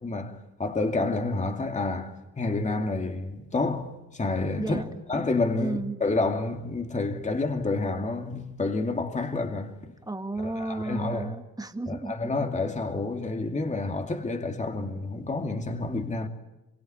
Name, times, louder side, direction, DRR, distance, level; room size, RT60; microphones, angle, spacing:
voice 1, 0.0-4.8 5.1-9.9 10.4-11.3 11.9-16.3, left 3 dB, 25° left, 2.5 m, -29 dB
voice 2, 4.6-5.0 5.6-6.0 10.0-12.1, right 2 dB, 10° right, 2.1 m, -33 dB
26.0 x 24.0 x 8.8 m
cardioid pair, 90°, 30 cm